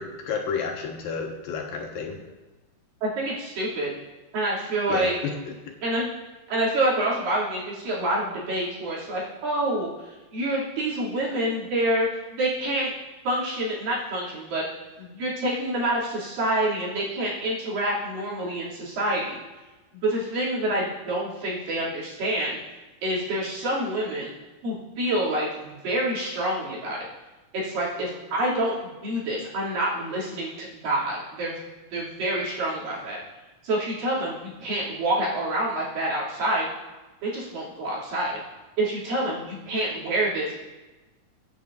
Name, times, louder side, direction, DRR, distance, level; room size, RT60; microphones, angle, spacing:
voice 1, 0.0-2.2 4.9-5.5, left 5 dB, 85° left, 1 dB, 3.2 m, -31 dB
voice 2, 3.0-3.9 4.3-5.1 5.8-6.1 6.5-12.9 13.2-14.6 15.0-19.4 19.9-22.6 23.0-24.3 24.6-27.0 27.5-31.6 31.9-33.2 33.6-36.7 37.2-38.4 38.8-40.5, right 1 dB, 75° right, -7 dB, 4.6 m, -27 dB
23.5 x 9.1 x 2.6 m, 1.1 s
omnidirectional pair, 4.0 m